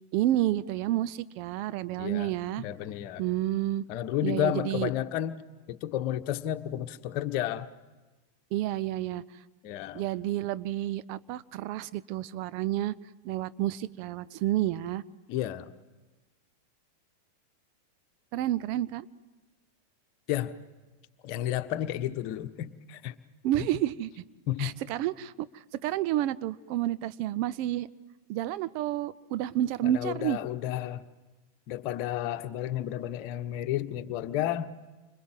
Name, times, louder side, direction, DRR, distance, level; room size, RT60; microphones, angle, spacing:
voice 1, 0.1-2.6 3.2-3.8 4.2-4.9 8.5-9.2 9.9-12.9 13.2-15.0 18.3-19.1 23.4-24.2 24.6-27.9 28.3-30.4, right 13 dB, 45° right, 0.9 m, -30 dB
voice 2, 2.0-2.3 2.6-3.2 3.9-5.4 5.7-7.7 9.6-10.0 15.3-15.7 20.3-20.5 21.2-23.1 23.6-23.7 24.5-24.8 29.8-31.0 31.7-34.7, left 12 dB, 45° left, 1.3 m, -32 dB
29.5 x 26.0 x 7.8 m
figure-of-eight pair, 90°, 0 cm